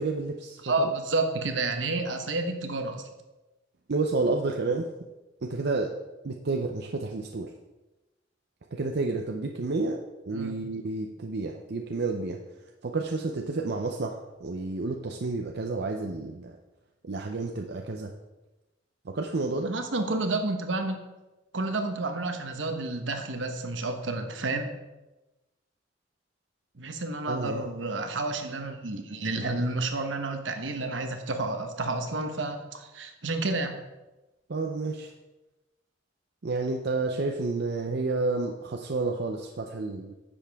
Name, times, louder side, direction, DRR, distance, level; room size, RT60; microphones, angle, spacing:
voice 1, 0.0-0.9 3.9-4.9 5.4-6.0 6.2-7.5 8.7-10.0 10.3-12.4 12.8-16.6 17.0-18.1 19.0-19.7 27.3-27.6 34.5-35.1 36.4-40.1, right 3 dB, 60° right, 3 dB, 0.6 m, -30 dB
voice 2, 0.6-3.1 10.3-10.6 19.7-21.0 21.5-24.7 26.7-33.8, right 2 dB, 75° right, 6 dB, 1.0 m, -30 dB
10.0 x 7.2 x 3.5 m, 1.1 s
head